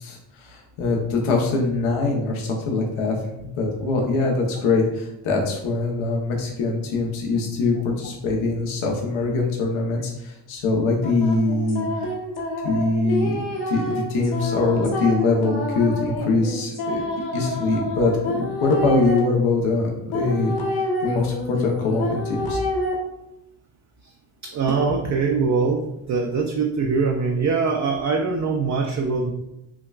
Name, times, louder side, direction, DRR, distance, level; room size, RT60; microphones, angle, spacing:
voice 1, 0.0-3.2 3.6-11.8 12.6-13.4 13.7-17.0 17.3-22.6, left 3 dB, 75° left, 0 dB, 1.0 m, -23 dB
sound 1, 11.0-19.2 20.1-22.9, left 1 dB, 50° left, 1.2 m, -28 dB
voice 2, 24.4-29.3, right 4 dB, 35° right, 3 dB, 0.4 m, -23 dB
5.9 x 2.2 x 2.4 m, 0.88 s
cardioid pair, 75°, 49 cm